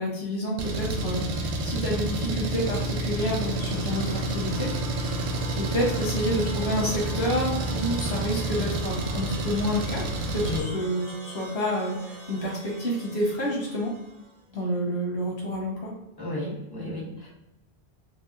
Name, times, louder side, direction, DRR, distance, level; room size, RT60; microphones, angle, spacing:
voice 1, 0.0-4.7 5.0-5.1 5.5-10.0 10.3-13.9 14.5-15.9, equal, 85° left, -3 dB, 1.1 m, -29 dB
Engine, 0.6-10.6, right 2 dB, 80° right, 0.8 m, -29 dB
sound 1, 3.2-14.4, right 2 dB, 40° right, 0.7 m, -44 dB
voice 2, 16.2-17.3, left 2 dB, 20° left, -8 dB, 1.2 m, -33 dB
4.0 x 2.1 x 2.6 m, 0.94 s
omnidirectional pair, 1.1 m